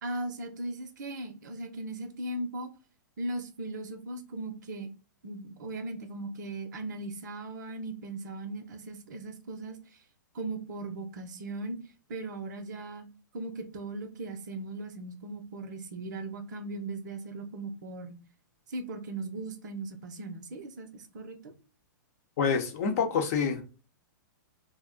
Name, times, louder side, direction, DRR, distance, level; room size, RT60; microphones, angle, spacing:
voice 1, 0.0-2.7 3.2-4.9 5.2-9.8 10.3-11.8 12.1-13.1 13.3-18.2 18.7-21.5, right 2 dB, 65° right, 0.6 m, -38 dB
voice 2, 22.4-23.6, left 6 dB, 50° left, 0.7 m, -27 dB
2.4 x 2.0 x 3.7 m
hypercardioid pair, 120°, 11 cm